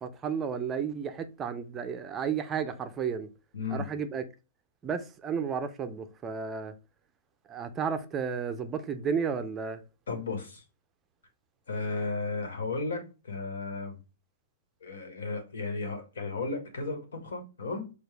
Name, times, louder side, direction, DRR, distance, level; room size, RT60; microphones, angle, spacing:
voice 1, 0.0-3.3 3.7-4.2 4.8-6.7 7.5-9.8, right 6 dB, 20° right, 0.4 m, -32 dB
voice 2, 3.5-3.9 10.1-10.6 11.7-14.0 14.8-17.9, left 3 dB, 80° left, 1.3 m, -34 dB
4.7 x 2.3 x 3.3 m
hypercardioid pair, 140°, 0 cm